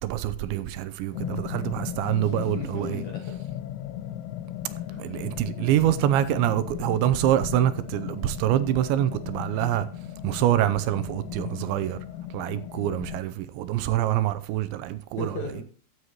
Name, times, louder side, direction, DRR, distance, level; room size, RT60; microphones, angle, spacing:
voice 1, 0.0-3.0 5.0-9.9 10.2-12.0 12.3-15.4, right 12 dB, 80° right, 2.9 m, -25 dB
sound 1, 1.1-13.2, left 12 dB, 85° left, 3.2 m, -36 dB
voice 2, 2.1-3.4 4.9-5.0 12.4-12.6 15.2-15.6, left 3 dB, 60° left, 2.1 m, -37 dB
14.5 x 8.1 x 2.9 m
omnidirectional pair, 5.4 m